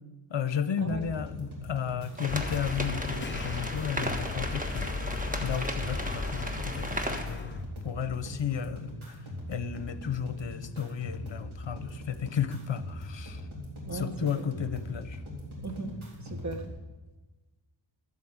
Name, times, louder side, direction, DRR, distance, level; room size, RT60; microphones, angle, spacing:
voice 1, 0.3-4.9 5.4-7.6 7.8-9.2 9.5-13.4 13.9-15.2, left 8 dB, 60° left, 12 dB, 0.8 m, -33 dB
sound 1, 0.8-16.8, left 1 dB, 75° right, 3.7 m, -41 dB
sound 2, 2.2-7.2, right 1 dB, 15° right, 1.3 m, -36 dB
sound 3, 2.3-7.6, left 4 dB, 25° left, 0.6 m, -36 dB
voice 2, 13.8-14.5 15.6-16.7, right 3 dB, 35° right, 6 dB, 1.3 m, -38 dB
12.5 x 8.5 x 7.2 m, 1.2 s
wide cardioid pair, 80°, 50 cm